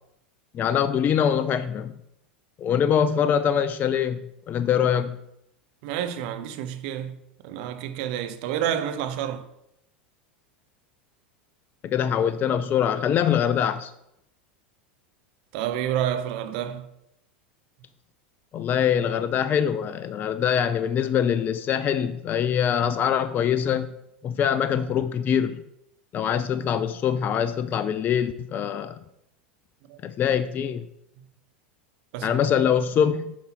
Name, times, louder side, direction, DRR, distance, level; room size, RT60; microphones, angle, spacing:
voice 1, 0.5-1.9 2.6-4.2 4.5-5.2 11.8-13.9 18.5-23.9 24.2-25.6 26.1-29.0 30.0-30.8 32.2-33.3, left 8 dB, 30° left, 0.4 m, -23 dB
voice 2, 5.8-7.2 7.4-9.5 15.5-16.9 29.9-30.0 32.1-32.3, right 10 dB, 55° right, 0.8 m, -29 dB
7.2 x 5.5 x 4.3 m
figure-of-eight pair, 85°, 6 cm